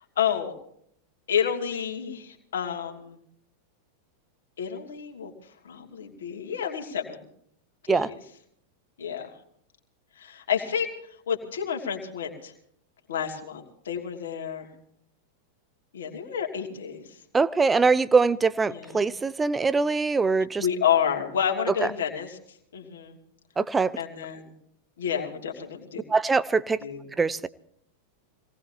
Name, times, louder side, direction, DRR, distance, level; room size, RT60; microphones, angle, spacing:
voice 1, 0.2-0.5 1.3-3.2 4.6-5.3 5.6-7.2 7.9-8.2 9.0-9.3 10.1-10.9 11.3-12.5 13.1-14.7 15.9-17.2 18.7-19.1 20.6-22.4 22.7-23.2 24.0-24.5 25.0-26.0 26.8-27.1, left 8 dB, 65° left, 2.7 m, -30 dB
voice 2, 17.3-20.7 21.8-21.9 23.6-23.9 26.1-26.8 27.2-27.5, right 4 dB, 15° right, 0.7 m, -23 dB
26.0 x 18.5 x 2.9 m
figure-of-eight pair, 90°, 0 cm